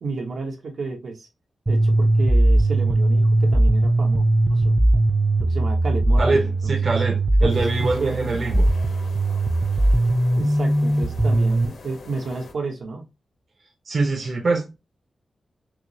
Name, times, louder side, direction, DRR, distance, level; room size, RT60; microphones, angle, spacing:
voice 1, 0.0-1.3 1.7-4.8 5.4-7.0 7.4-8.3 10.3-13.0, right 3 dB, 70° right, 1.0 m, -31 dB
sound 1, 1.7-11.7, right 2 dB, 20° right, 0.5 m, -19 dB
voice 2, 6.2-8.7 13.9-14.8, right 3 dB, 45° right, 0.8 m, -24 dB
sound 2, 7.5-12.5, left 4 dB, 80° left, 0.9 m, -43 dB
5.9 x 2.0 x 2.7 m
wide cardioid pair, 155°, 0 cm